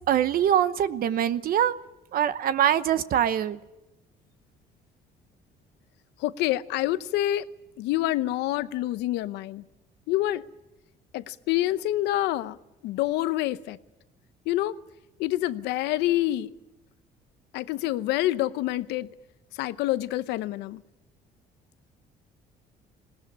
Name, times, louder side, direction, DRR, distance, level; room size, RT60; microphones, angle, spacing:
voice 1, 0.1-1.7 2.1-3.6, right 10 dB, 60° right, 13 dB, 0.9 m, -23 dB
voice 2, 6.2-7.4 7.8-9.6 10.1-10.4 11.1-12.6 12.8-13.8 14.5-14.7 15.2-16.5 17.5-19.1 19.6-20.8, left 15 dB, 90° left, 14 dB, 0.8 m, -27 dB
20.5 x 18.0 x 9.9 m, 0.99 s
cardioid pair, 110°, 17 cm